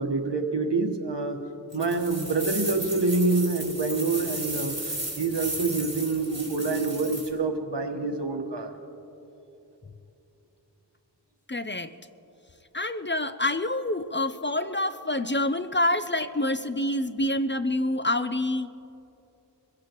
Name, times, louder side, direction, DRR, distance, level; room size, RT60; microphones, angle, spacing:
voice 1, 0.0-1.4 1.7-8.7, right 3 dB, 75° right, 4 dB, 1.3 m, -27 dB
sound 1, 1.7-7.3, right 1 dB, 40° right, 3.2 m, -35 dB
voice 2, 11.5-11.9 12.7-18.7, left 1 dB, 30° left, 11 dB, 0.5 m, -27 dB
24.5 x 16.0 x 3.0 m, 2.9 s
wide cardioid pair, 50°, 42 cm